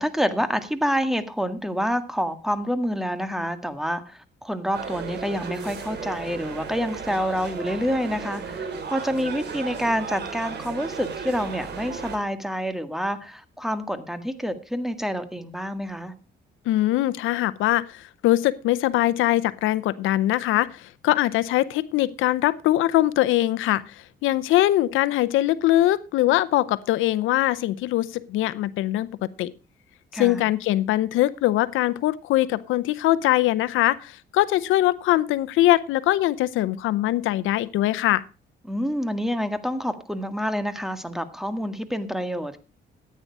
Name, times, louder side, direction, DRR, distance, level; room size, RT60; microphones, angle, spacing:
voice 1, 0.0-16.1 30.1-30.4 38.6-42.6, equal, ahead, 1.8 m, -27 dB
sound 1, 4.7-12.2, right 5 dB, 60° right, 3.6 m, -35 dB
voice 2, 16.7-29.1 29.4-29.5 30.1-38.2, left 15 dB, 90° left, 0.7 m, -22 dB
14.0 x 9.4 x 4.6 m
cardioid pair, 90°, 20 cm